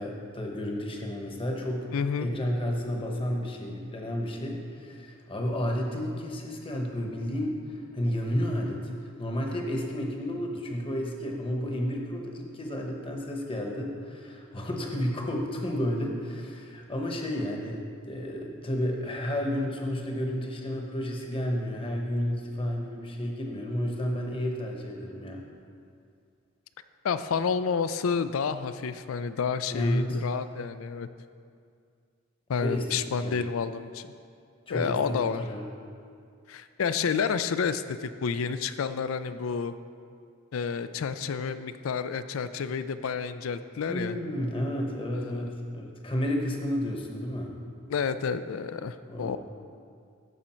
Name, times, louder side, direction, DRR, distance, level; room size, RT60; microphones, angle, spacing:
voice 1, 0.0-1.9 2.2-25.4 29.7-30.2 32.6-33.4 34.7-35.7 43.9-47.5 49.1-49.4, equal, 25° left, 1 dB, 1.0 m, -31 dB
voice 2, 1.9-2.3 27.0-31.1 32.5-34.1 34.7-35.4 36.5-39.7 40.5-44.2 45.1-45.5 47.9-49.4, left 6 dB, 80° left, 12 dB, 0.4 m, -30 dB
13.5 x 5.1 x 4.4 m, 2.3 s
head